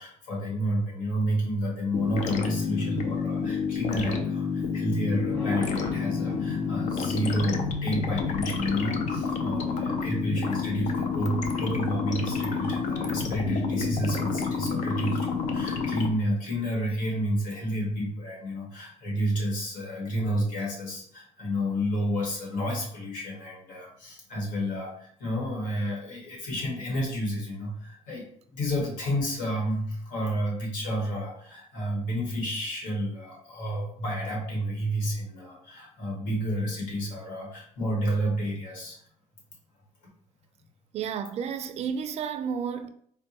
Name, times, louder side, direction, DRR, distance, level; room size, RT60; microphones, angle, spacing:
voice 1, 0.0-39.0, equal, 85° left, 1.5 m, -30 dB
sound 1, 1.9-16.1, left 5 dB, 65° left, 0.5 m, -29 dB
Electric guitar / Strum, 5.3-11.0, left 3 dB, 35° left, 1.5 m, -42 dB
voice 2, 40.9-42.9, right 7 dB, 55° right, 0.4 m, -31 dB
4.5 x 2.2 x 2.8 m
cardioid pair, 105°, 13 cm